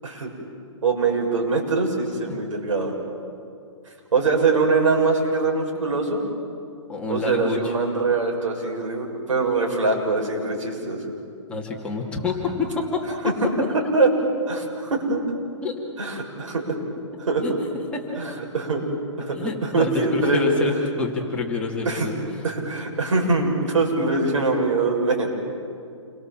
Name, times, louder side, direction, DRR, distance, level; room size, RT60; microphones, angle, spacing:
voice 1, 0.8-2.9 4.1-6.2 7.1-11.1 13.2-13.3 13.7-15.2 16.0-16.8 17.2-17.5 18.2-18.8 19.2-20.7 21.8-22.1 22.4-25.3, right 3 dB, 85° right, 1 dB, 6.6 m, -23 dB
voice 2, 6.9-7.7 11.5-13.1 15.6-15.7 17.4-17.5 18.1-18.2 19.3-22.2, left 3 dB, 5° left, -3 dB, 2.3 m, -27 dB
28.5 x 23.5 x 7.5 m, 2.4 s
hypercardioid pair, 165°, 16 cm